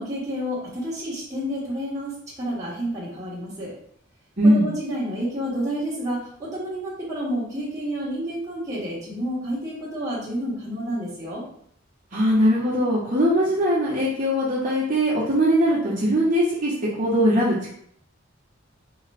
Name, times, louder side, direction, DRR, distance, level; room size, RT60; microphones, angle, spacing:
voice 1, 0.0-3.7 4.4-11.4, equal, 15° right, -8 dB, 1.4 m, -30 dB
voice 2, 4.4-4.7 12.1-17.7, equal, 40° right, -8 dB, 1.1 m, -20 dB
3.7 x 2.9 x 3.4 m, 0.67 s
head